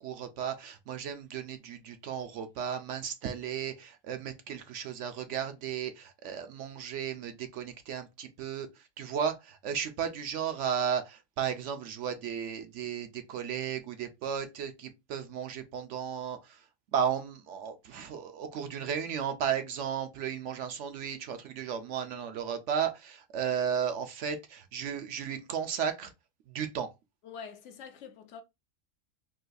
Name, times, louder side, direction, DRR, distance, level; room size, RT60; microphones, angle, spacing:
voice 1, 0.0-8.7 9.0-16.4 16.9-26.1 26.5-26.9, right 8 dB, 70° right, 0.9 m, -34 dB
voice 2, 27.2-28.4, left 6 dB, 70° left, 0.9 m, -45 dB
3.8 x 2.5 x 2.5 m
omnidirectional pair, 1.4 m